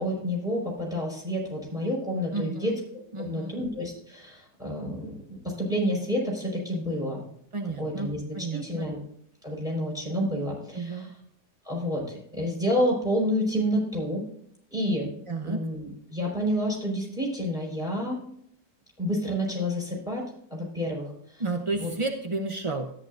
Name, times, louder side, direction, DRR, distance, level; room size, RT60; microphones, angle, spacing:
voice 1, 0.0-2.7 3.2-5.1 5.4-7.2 7.8-9.0 9.4-11.1 11.6-14.2 14.7-15.1 15.4-18.2 19.0-21.4 21.8-21.9, equal, ahead, -2 dB, 4.8 m, -29 dB
voice 2, 2.3-2.8 3.1-3.6 7.5-8.1 8.3-8.9 10.7-11.1 15.3-15.6 21.4-22.9, right 3 dB, 40° right, 3 dB, 0.4 m, -31 dB
13.0 x 9.8 x 2.5 m, 0.68 s
omnidirectional pair, 1.8 m